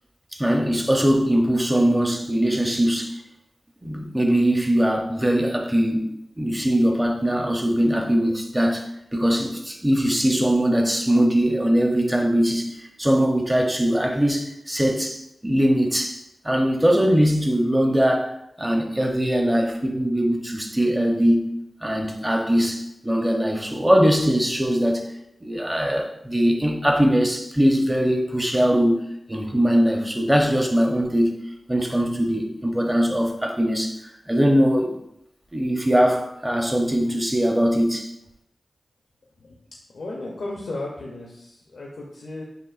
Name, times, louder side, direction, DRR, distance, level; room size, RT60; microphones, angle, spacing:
voice 1, 0.3-3.2 3.8-6.1 6.4-21.5 21.8-25.1 25.4-29.0 29.3-31.4 31.7-35.0 35.5-38.1, equal, 15° right, 2 dB, 0.7 m, -21 dB
voice 2, 39.9-42.4, left 2 dB, 90° left, -3 dB, 0.6 m, -34 dB
6.4 x 2.5 x 2.4 m, 0.82 s
cardioid pair, 50°, 0 cm